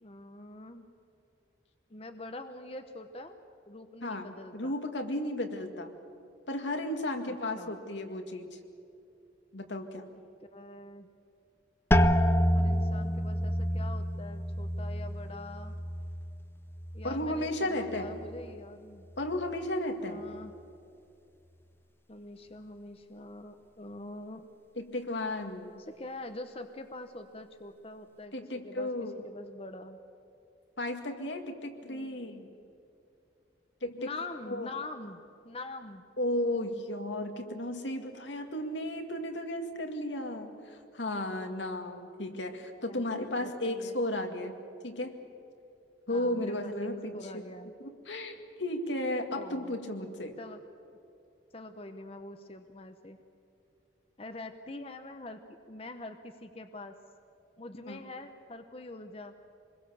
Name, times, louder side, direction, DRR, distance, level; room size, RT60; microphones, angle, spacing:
voice 1, 0.0-0.9 1.9-3.4 3.7-4.7 7.3-7.8 10.5-11.1 12.5-15.8 16.9-19.1 20.0-20.5 22.1-24.5 25.8-30.0 31.8-32.2 34.0-35.2 35.4-36.0 42.8-43.0 43.3-44.0 46.1-47.7 49.3-49.8 50.4-50.6 51.5-53.2 54.2-57.0 57.6-59.3, left 2 dB, 30° left, 7 dB, 0.9 m, -44 dB
voice 2, 4.0-5.9 6.5-8.6 9.5-10.0 17.0-18.1 19.2-20.2 24.8-25.8 28.3-29.2 30.8-32.5 33.8-34.1 34.5-34.7 36.2-44.5 44.8-45.2 46.1-47.4 47.8-50.4 57.9-58.0, left 1 dB, 85° left, 4 dB, 2.1 m, -34 dB
sound 1, 11.9-17.5 17.9-18.6 19.1-19.5, equal, 15° left, 0.6 m, -29 dB
26.0 x 21.5 x 7.1 m, 2.6 s
head